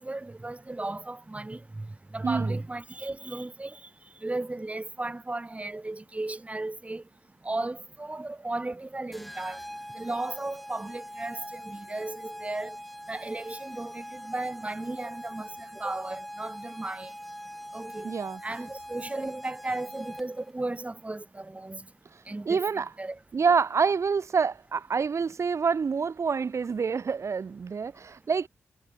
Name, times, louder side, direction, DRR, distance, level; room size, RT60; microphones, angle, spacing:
voice 1, 0.0-1.9 2.1-3.8 4.2-7.0 7.4-9.6 10.0-12.8 13.1-17.1 17.7-18.1 18.4-21.8 22.3-23.2, right 2 dB, 25° right, 3.5 m, -35 dB
voice 2, 2.2-2.5 18.0-18.4 22.5-22.9 23.3-28.5, right 5 dB, 60° right, 3.2 m, -27 dB
sound 1, 9.1-20.5, equal, ahead, 7.5 m, -43 dB
cardioid pair, 50°, 6 cm